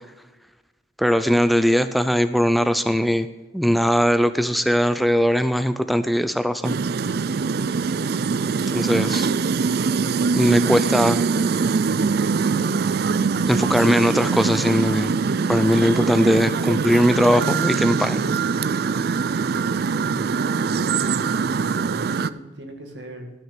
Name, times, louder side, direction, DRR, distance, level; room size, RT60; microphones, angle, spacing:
voice 1, 1.0-3.3 3.5-6.8 8.7-9.3 10.3-11.2 13.5-15.1 15.5-18.2, equal, ahead, 11 dB, 0.4 m, -20 dB
sound 1, 6.6-22.3, right 5 dB, 60° right, 0.4 m, -23 dB
voice 2, 20.0-23.3, right 1 dB, 80° right, 4 dB, 2.2 m, -39 dB
13.0 x 6.3 x 6.7 m, 1.2 s
head